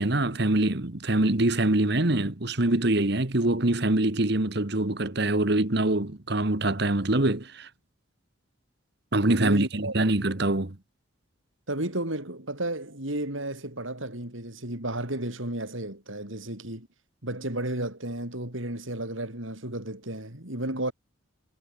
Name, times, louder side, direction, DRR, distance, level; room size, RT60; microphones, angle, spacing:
voice 1, 0.0-7.7 9.1-10.8, right 2 dB, 55° right, 1.6 m, -24 dB
voice 2, 9.3-9.9 11.7-16.9 17.2-20.9, right 1 dB, 75° right, 6.3 m, -33 dB
head